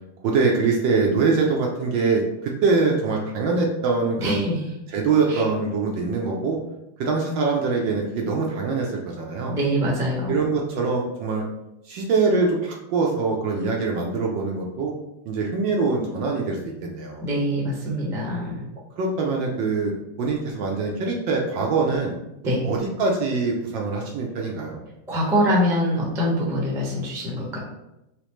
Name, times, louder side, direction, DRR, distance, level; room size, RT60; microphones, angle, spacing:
voice 1, 0.2-4.5 4.9-6.6 7.0-9.6 10.3-11.4 11.9-14.9 15.3-17.2 19.0-19.9 20.2-22.1 22.6-24.8, right 4 dB, 70° right, 0 dB, 1.2 m, -23 dB
voice 2, 4.2-4.6 5.3-5.4 9.5-10.3 17.2-18.6 22.4-22.7 25.1-27.6, equal, 5° right, -4 dB, 0.5 m, -24 dB
5.1 x 3.1 x 3.1 m, 0.89 s
omnidirectional pair, 2.4 m